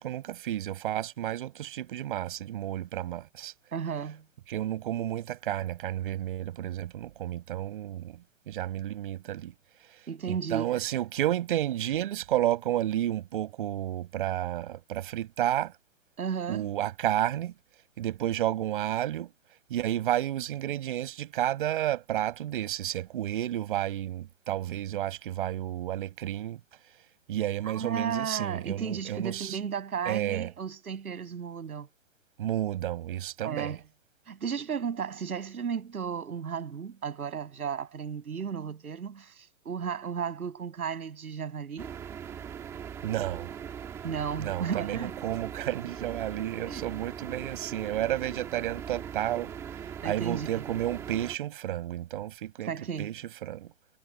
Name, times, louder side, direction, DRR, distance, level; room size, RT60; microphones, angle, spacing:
voice 1, 0.0-3.5 4.5-8.2 8.5-9.5 10.3-15.7 16.5-17.5 18.0-19.3 19.7-26.6 27.3-29.6 30.1-30.5 32.4-33.8 43.0-43.5 44.4-49.5 50.0-52.7 53.0-53.1 53.4-53.7, right 12 dB, 35° right, 5.6 m, -31 dB
voice 2, 3.7-4.2 10.1-10.7 16.2-16.7 27.6-31.9 33.4-33.8 34.3-41.9 44.0-45.1 46.7-46.8 50.0-50.5 52.7-53.1, right 7 dB, 75° right, 7.2 m, -34 dB
sound 1, 41.8-51.4, right 8 dB, 5° right, 1.4 m, -40 dB
hypercardioid pair, 175°, 44 cm